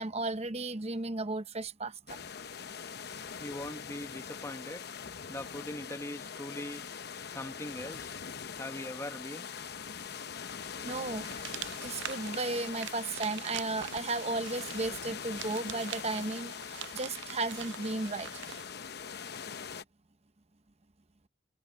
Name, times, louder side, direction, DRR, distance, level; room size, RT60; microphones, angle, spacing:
voice 1, 0.0-2.2 10.8-11.2 11.8-18.3, right 3 dB, 35° right, 0.9 m, -34 dB
sound 1, 2.1-19.8, left 6 dB, 60° left, 0.9 m, -42 dB
voice 2, 3.4-4.8 5.3-6.8 7.3-8.2 8.6-9.5 16.9-17.1, left 1 dB, 15° left, 1.1 m, -41 dB
sound 2, 11.2-18.7, right 11 dB, 75° right, 0.5 m, -45 dB
head